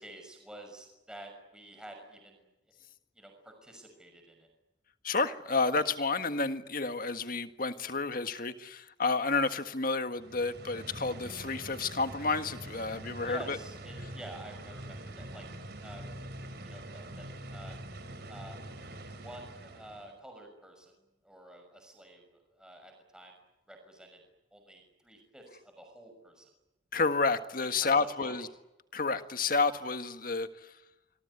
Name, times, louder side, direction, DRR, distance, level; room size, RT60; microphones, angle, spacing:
voice 1, 0.0-2.5 3.1-4.5 13.1-15.5 15.8-16.1 16.6-17.8 18.2-18.7 19.2-20.9 21.2-22.2 22.5-23.4 23.7-24.2 24.5-26.5 27.8-28.4, right 1 dB, 5° right, 3 dB, 6.1 m, -49 dB
voice 2, 5.0-13.6 26.9-28.5 28.9-30.7, left 4 dB, 45° left, 9 dB, 1.7 m, -30 dB
sound 1, 10.1-20.1, right 1 dB, 55° right, 4.5 m, -44 dB
26.5 x 22.0 x 9.8 m, 0.98 s
head